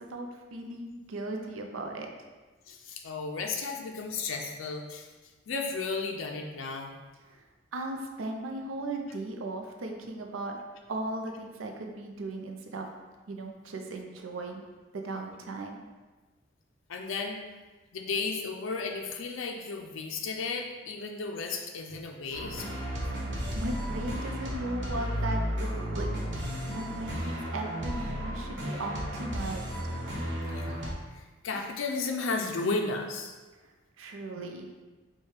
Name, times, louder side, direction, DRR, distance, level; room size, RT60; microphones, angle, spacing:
voice 1, 0.1-2.1 7.3-7.4 7.7-10.6 10.9-12.9 13.3-14.6 14.9-15.8 23.0-23.2 23.5-26.1 26.3-26.4 26.7-29.8 34.0-34.7, right 2 dB, 85° right, 3 dB, 0.5 m, -37 dB
voice 2, 2.7-5.1 5.5-6.9 16.9-17.4 17.9-22.7 30.4-33.4, left 4 dB, 80° left, 2 dB, 0.4 m, -34 dB
sound 1, 22.3-30.9, equal, 65° right, 1.0 m, -33 dB
4.8 x 2.3 x 4.3 m, 1.3 s
head